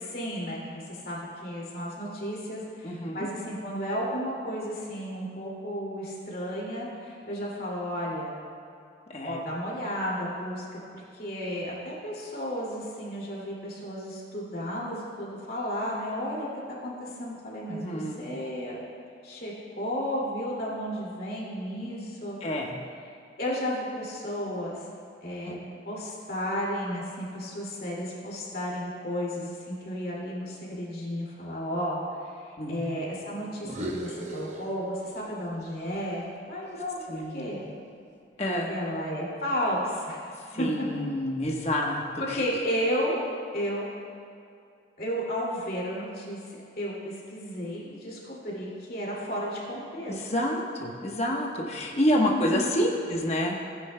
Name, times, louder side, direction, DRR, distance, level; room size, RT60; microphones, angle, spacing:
voice 1, 0.0-8.4 9.2-16.5 16.8-18.9 19.2-22.4 23.4-24.8 25.2-25.6 25.8-37.6 38.7-40.2 40.5-40.9 42.2-43.2 43.5-43.9 45.0-46.4 46.8-50.3 52.2-52.7, equal, 50° left, -5 dB, 2.4 m, -33 dB
voice 2, 2.8-3.3 9.1-9.4 17.7-18.4 22.4-22.7 25.4-25.6 32.6-32.9 37.1-37.5 38.4-38.7 40.5-42.0 42.3-42.4 50.1-53.8, equal, 35° left, -1 dB, 1.1 m, -28 dB
sound 1, 33.6-35.3 35.6-37.8, right 1 dB, 40° right, 0.8 m, -39 dB
16.5 x 9.6 x 2.2 m, 2.4 s
head